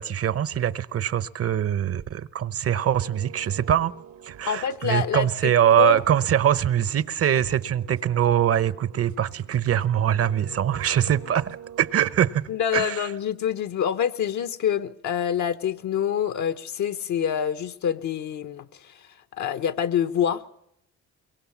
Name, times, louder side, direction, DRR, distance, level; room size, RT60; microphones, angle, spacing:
voice 1, 0.0-3.9 4.2-13.1, right 10 dB, 50° right, 0.9 m, -23 dB
sound 1, 2.9-11.9, right 9 dB, 80° right, 1.6 m, -46 dB
voice 2, 4.4-5.5 5.8-6.0 12.5-20.5, left 8 dB, 70° left, 1.1 m, -26 dB
23.5 x 22.5 x 7.2 m
cardioid pair, 90°, 30 cm